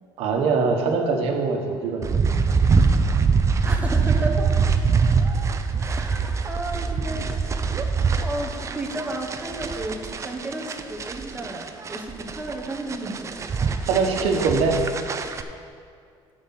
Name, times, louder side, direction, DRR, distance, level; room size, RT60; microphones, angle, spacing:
voice 1, 0.2-2.1 3.1-3.2 13.9-14.8, right 4 dB, 75° right, 2 dB, 1.3 m, -22 dB
sound 1, 2.0-15.4, right 5 dB, 30° right, 0.5 m, -23 dB
voice 2, 3.6-4.5 5.8-7.7 8.2-13.5, right 2 dB, 15° right, 1 dB, 1.2 m, -33 dB
11.0 x 5.1 x 6.0 m, 2.2 s
cardioid pair, 125°, 10 cm